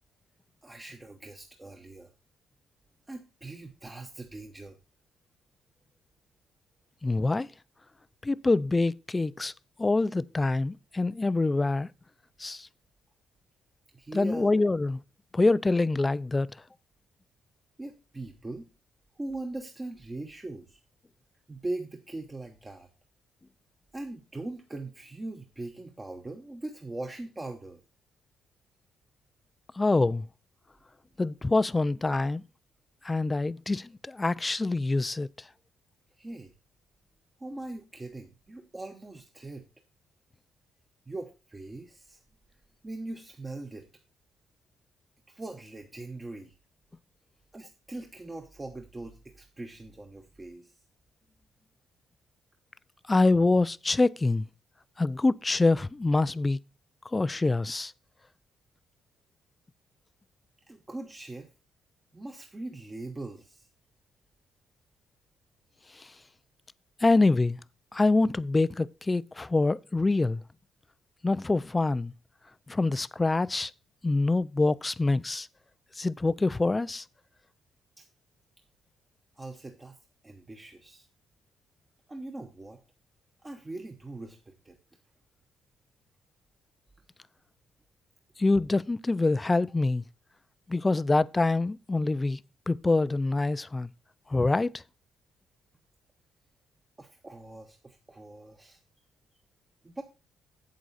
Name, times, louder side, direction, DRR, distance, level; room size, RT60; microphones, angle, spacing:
voice 1, 0.6-2.1 3.1-4.8 13.9-14.5 17.8-18.7 19.1-20.8 21.5-22.9 23.9-27.8 36.2-36.5 37.4-39.7 41.1-42.2 42.8-43.9 45.3-46.6 47.5-50.8 60.7-61.5 62.1-63.7 78.0-78.1 79.4-80.0 80.2-81.1 82.1-82.8 83.4-84.8 97.0-98.8 99.8-100.0, right 2 dB, 20° right, 1.2 m, -41 dB
voice 2, 7.0-7.5 8.2-9.5 9.8-11.9 12.4-12.7 14.1-15.0 15.3-16.5 29.8-30.2 31.2-32.4 33.0-35.3 53.1-54.5 55.0-56.6 57.1-57.9 66.0-66.1 67.0-67.6 67.9-70.4 71.2-72.1 72.7-73.7 74.0-75.5 76.0-77.0 88.4-90.0 90.7-92.4 92.7-93.9 94.3-94.8, left 3 dB, 20° left, 0.4 m, -25 dB
8.1 x 7.8 x 4.1 m
cardioid pair, 90°, 0 cm